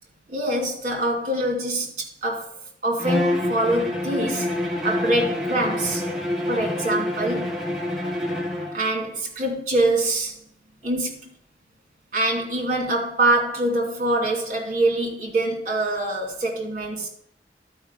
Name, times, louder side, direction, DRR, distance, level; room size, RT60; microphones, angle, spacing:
voice 1, 0.3-2.5 2.8-4.5 4.8-6.0 6.5-7.5 8.7-10.4 10.8-11.1 12.1-17.1, right 2 dB, 45° right, 0 dB, 2.7 m, -24 dB
Bowed string instrument, 3.0-8.8, left 1 dB, ahead, 1.3 m, -27 dB
11.5 x 5.0 x 5.2 m, 0.67 s
head